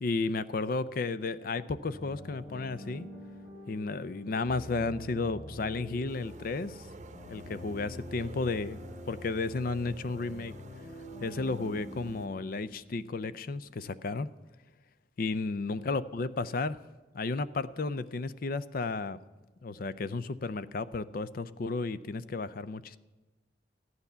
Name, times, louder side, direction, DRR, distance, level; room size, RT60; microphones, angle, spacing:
voice 1, 0.0-3.1 3.7-6.8 7.3-8.8 9.1-10.5 11.2-14.3 15.2-16.8 17.1-19.2 19.6-23.0, left 3 dB, 55° left, 0.5 m, -33 dB
sound 1, 1.8-13.5, equal, 80° left, 5.2 m, -46 dB
sound 2, 6.1-12.3, right 2 dB, 40° right, 0.8 m, -51 dB
14.5 x 9.6 x 6.8 m
head